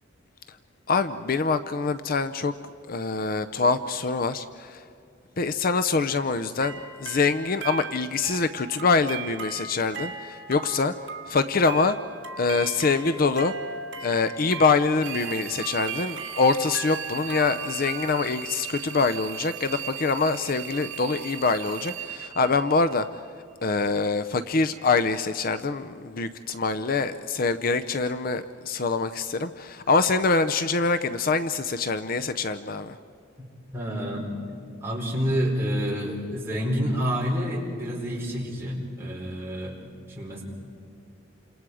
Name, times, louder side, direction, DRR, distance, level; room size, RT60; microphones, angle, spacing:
voice 1, 0.9-2.5 2.9-4.8 5.4-10.9 11.3-12.0 12.4-13.5 14.0-23.1 23.6-33.0, left 4 dB, 45° left, 11 dB, 0.6 m, -25 dB
sound 1, 6.6-18.3, right 5 dB, 65° right, 1.9 m, -38 dB
sound 2, 15.0-23.2, right 10 dB, 85° right, 2.4 m, -38 dB
voice 2, 33.7-34.3 34.8-39.8 40.1-40.4, equal, 15° right, -4 dB, 5.2 m, -28 dB
29.5 x 27.0 x 4.9 m, 2.5 s
head